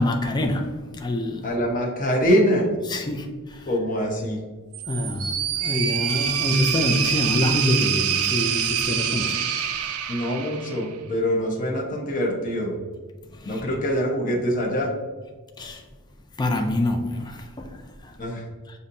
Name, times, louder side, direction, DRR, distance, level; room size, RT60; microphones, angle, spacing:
voice 1, 0.0-1.5 2.9-3.7 4.9-9.4 13.4-13.6 15.6-15.8 16.4-18.1, left 1 dB, 20° left, 0.4 m, -26 dB
voice 2, 1.4-2.7 3.7-4.4 10.1-12.7 13.4-14.9 18.2-18.4, equal, 40° left, 0.9 m, -24 dB
sound 1, 4.7-11.0, right 9 dB, 85° right, 0.4 m, -25 dB
6.9 x 2.7 x 2.7 m
head